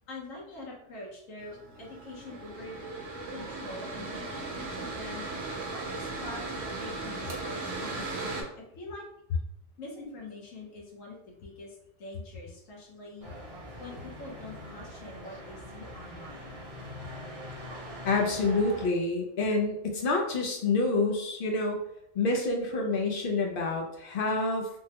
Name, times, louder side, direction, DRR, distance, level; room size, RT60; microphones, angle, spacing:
voice 1, 0.1-2.8 3.3-8.5 8.8-9.0 9.8-13.3 13.8-16.5, left 2 dB, 80° left, -2 dB, 1.3 m, -45 dB
Mechanical fan, 1.4-8.4, right 3 dB, 60° right, 0.9 m, -37 dB
sound 1, 13.2-18.9, equal, 30° right, 0.8 m, -43 dB
voice 2, 18.0-21.8 22.1-24.7, left 3 dB, 60° left, 1 dB, 0.6 m, -27 dB
3.5 x 2.1 x 2.8 m, 0.80 s
omnidirectional pair, 1.4 m